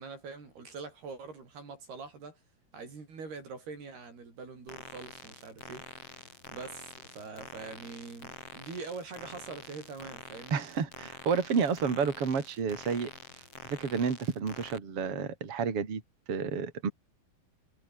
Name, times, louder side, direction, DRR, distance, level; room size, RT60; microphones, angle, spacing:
voice 1, 0.0-2.4 2.7-5.8 6.5-10.6, right 4 dB, 80° right, 9.2 m, -44 dB
sound 1, 4.7-14.8, left 3 dB, 35° left, 8.3 m, -47 dB
voice 2, 10.5-13.1 13.7-16.0 16.3-16.9, right 6 dB, 40° right, 3.9 m, -30 dB
omnidirectional pair, 4.5 m